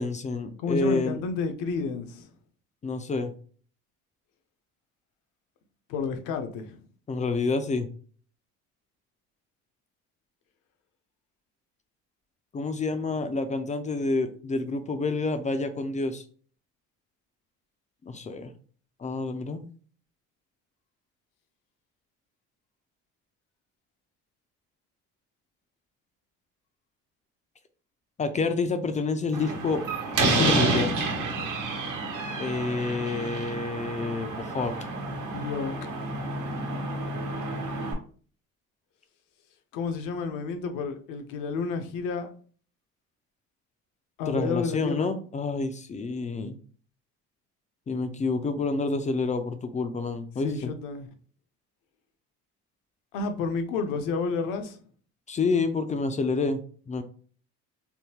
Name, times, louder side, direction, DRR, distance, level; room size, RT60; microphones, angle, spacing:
voice 1, 0.0-1.2 2.8-3.3 7.1-7.9 12.5-16.2 18.0-18.5 19.0-19.6 28.2-29.8 30.3-30.9 32.4-34.7 44.3-46.6 47.9-50.7 55.3-56.6 56.9-57.0, left 3 dB, 25° left, 0.3 m, -28 dB
voice 2, 0.6-2.3 5.9-6.8 35.2-36.1 39.7-42.3 44.2-45.1 50.4-51.1 53.1-54.8, left 4 dB, 75° left, 0.7 m, -31 dB
Slam, 29.3-37.9, right 2 dB, 70° right, 1.1 m, -29 dB
3.6 x 2.1 x 2.8 m
supercardioid pair, 90°, 32 cm